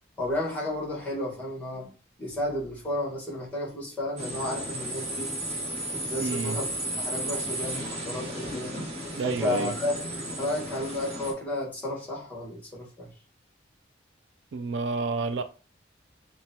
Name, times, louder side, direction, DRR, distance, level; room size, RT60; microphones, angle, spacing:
voice 1, 0.2-1.9 2.2-5.3 5.9-6.7 7.0-8.7 9.2-9.9 10.4-13.1, left 1 dB, 10° left, 1.3 m, -32 dB
sound 1, 4.2-11.3, right 1 dB, 35° right, 1.1 m, -34 dB
voice 2, 6.2-6.6 9.1-9.7 14.5-15.4, right 4 dB, 65° right, 0.3 m, -29 dB
5.8 x 2.2 x 2.8 m
head